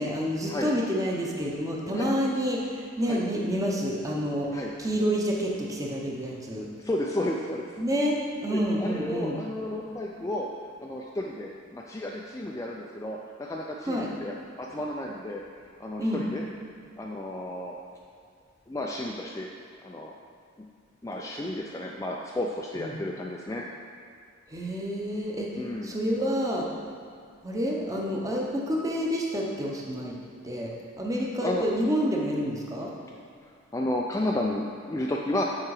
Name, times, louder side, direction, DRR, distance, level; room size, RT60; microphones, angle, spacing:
voice 1, 0.0-6.7 7.8-9.4 13.9-14.1 16.0-16.2 22.8-22.9 24.5-26.7 27.4-30.1 30.4-32.9, equal, 15° right, -2 dB, 0.8 m, -28 dB
voice 2, 4.5-4.9 6.8-7.6 8.5-10.5 10.8-15.4 15.8-16.4 17.0-17.8 18.7-19.5 19.8-20.1 21.0-23.7 25.6-25.9 31.4-31.7 33.4-35.4, left 1 dB, 15° left, -2 dB, 0.3 m, -32 dB
7.5 x 4.7 x 4.8 m, 2.3 s
head